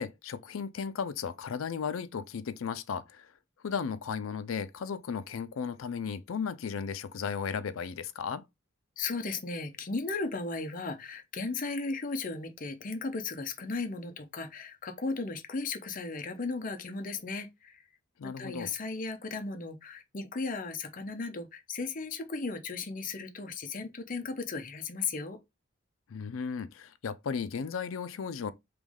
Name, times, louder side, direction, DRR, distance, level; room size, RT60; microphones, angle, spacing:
voice 1, 0.0-3.3 3.6-8.4 18.2-18.7 26.1-28.5, left 6 dB, 85° left, 0.4 m, -35 dB
voice 2, 9.0-17.8 18.2-25.4, left 3 dB, 40° left, 0.7 m, -36 dB
3.4 x 3.1 x 3.6 m
head